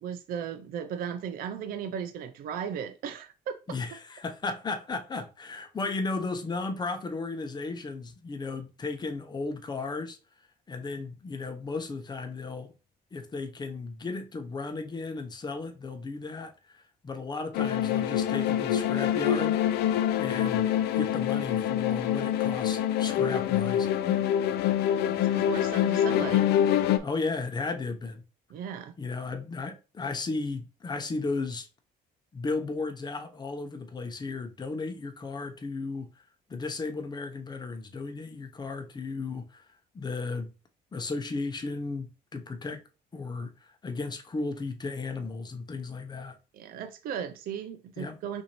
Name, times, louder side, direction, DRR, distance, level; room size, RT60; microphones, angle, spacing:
voice 1, 0.0-3.3 24.0-24.4 25.1-26.5 28.5-28.9 46.5-48.4, right 8 dB, 60° right, 0.5 m, -36 dB
voice 2, 3.7-10.2 10.7-12.7 13.1-19.6 20.2-20.7 20.9-23.9 27.0-28.2 29.0-31.7 32.3-36.1 36.5-39.7 39.9-40.5 40.9-42.8 43.1-46.3 48.0-48.2, left 3 dB, 25° left, 0.7 m, -35 dB
sound 1, 17.5-27.0, left 10 dB, 75° left, 0.5 m, -25 dB
5.7 x 2.7 x 3.0 m
cardioid pair, 110°, 17 cm